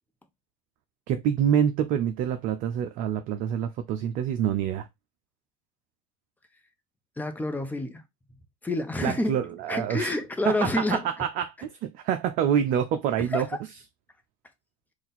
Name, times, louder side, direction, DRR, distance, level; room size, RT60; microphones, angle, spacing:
voice 1, 1.1-4.9 9.0-10.1 10.5-13.5, right 9 dB, 55° right, 0.5 m, -26 dB
voice 2, 7.2-8.0 8.6-9.4 9.7-11.1 13.3-13.6, left 2 dB, 10° left, 1.0 m, -28 dB
3.9 x 2.5 x 4.0 m
hypercardioid pair, 75°, 17 cm